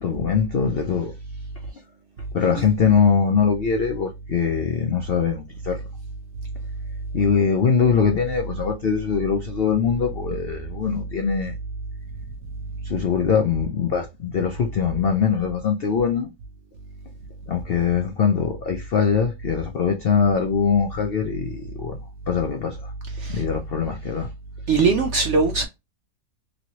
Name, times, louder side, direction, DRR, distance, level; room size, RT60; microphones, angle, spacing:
voice 1, 0.0-1.1 2.3-5.8 7.1-11.5 12.8-16.3 17.5-22.0 22.3-22.9 23.3-24.3, left 6 dB, 90° left, 0.5 m, -22 dB
voice 2, 24.7-25.7, right 4 dB, 75° right, 0.7 m, -20 dB
3.0 x 3.0 x 2.7 m
omnidirectional pair, 1.8 m